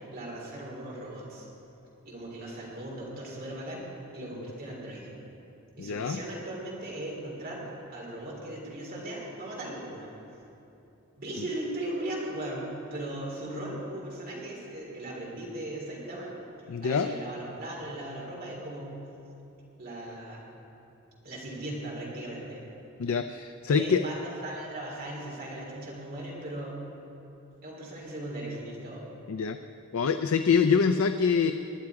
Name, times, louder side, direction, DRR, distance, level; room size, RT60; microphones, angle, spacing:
voice 1, 0.1-1.5 2.0-3.8 4.1-5.1 5.8-7.6 7.9-10.1 11.2-16.3 16.8-18.9 19.8-20.4 21.2-22.6 23.7-26.7 27.6-29.0, right 1 dB, 45° right, -4 dB, 3.2 m, -38 dB
voice 2, 5.8-6.2 16.7-17.1 23.0-24.0 29.3-29.6 29.9-31.5, left 6 dB, 65° left, 9 dB, 0.4 m, -25 dB
19.5 x 10.5 x 4.8 m, 2.8 s
head